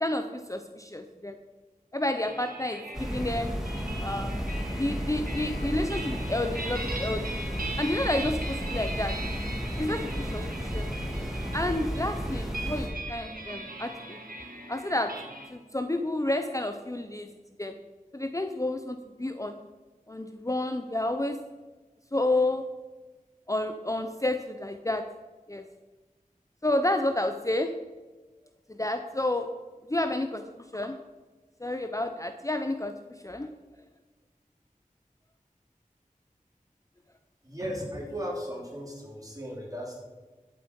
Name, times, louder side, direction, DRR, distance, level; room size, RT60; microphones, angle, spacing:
voice 1, 0.0-1.4 1.9-3.5 4.0-4.4 4.8-7.4 7.8-9.2 9.8-10.9 11.5-14.2 14.7-15.1 15.5-17.3 17.6-17.8 18.1-19.7 20.1-21.4 22.1-22.6 23.5-25.0 25.5-25.6 26.6-27.7 28.8-29.5 29.9-30.4 30.7-31.0 31.6-32.9 33.2-33.5, left 1 dB, 20° left, 7 dB, 0.6 m, -30 dB
sound 1, 2.2-15.5, right 2 dB, 90° right, 1.7 m, -40 dB
sound 2, 2.9-12.9, equal, 5° right, 2.3 m, -33 dB
voice 2, 37.4-40.0, equal, 25° right, -3 dB, 3.5 m, -36 dB
11.5 x 7.7 x 5.2 m, 1.3 s
wide cardioid pair, 40°, 14 cm